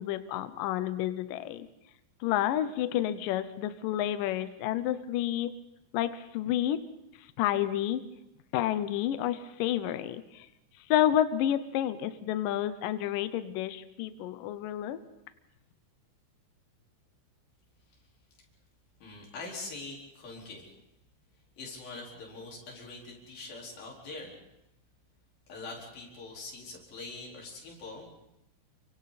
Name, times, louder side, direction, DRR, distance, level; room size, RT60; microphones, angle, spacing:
voice 1, 0.0-1.7 2.2-5.6 5.9-6.9 7.2-8.0 8.5-10.5 10.9-15.0, left 11 dB, 90° left, 12 dB, 1.9 m, -30 dB
voice 2, 19.0-20.7 21.6-24.4 25.5-28.1, left 3 dB, 55° left, -2 dB, 6.0 m, -43 dB
29.5 x 24.5 x 4.2 m, 0.85 s
omnidirectional pair, 5.2 m